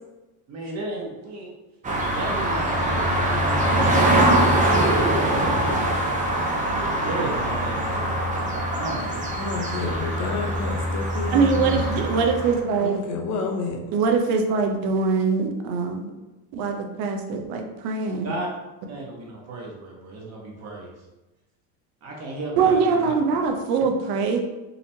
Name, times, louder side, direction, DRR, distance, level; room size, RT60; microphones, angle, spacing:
voice 1, 0.5-1.5 2.1-5.8 6.7-8.5 8.7-9.4 18.2-18.5 18.9-20.9 22.0-23.1, right 2 dB, 40° right, -2 dB, 1.2 m, -35 dB
sound 1, 1.8-12.6, right 1 dB, 20° right, 0.6 m, -23 dB
voice 2, 9.4-12.0 12.8-13.8, left 4 dB, 45° left, 3 dB, 0.7 m, -30 dB
voice 3, 11.3-13.0 13.9-16.1 16.5-18.4 22.6-24.4, right 5 dB, 65° right, 4 dB, 0.7 m, -23 dB
4.0 x 2.9 x 2.7 m, 1.1 s
cardioid pair, 125°, 40 cm